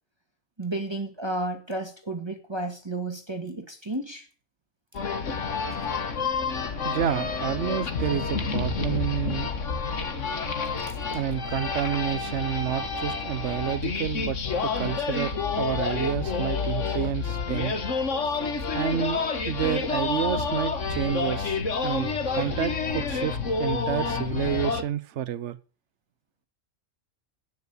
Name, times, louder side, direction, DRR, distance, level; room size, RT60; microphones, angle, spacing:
voice 1, 0.6-4.3, right 2 dB, 20° right, 4 dB, 2.0 m, -32 dB
sound 1, 4.9-24.8, left 4 dB, 70° left, 1.8 m, -29 dB
voice 2, 6.8-9.5 11.1-14.4 14.6-17.7 18.7-25.6, right 10 dB, 65° right, 14 dB, 1.1 m, -29 dB
18.0 x 6.5 x 8.4 m, 0.39 s
omnidirectional pair, 1.3 m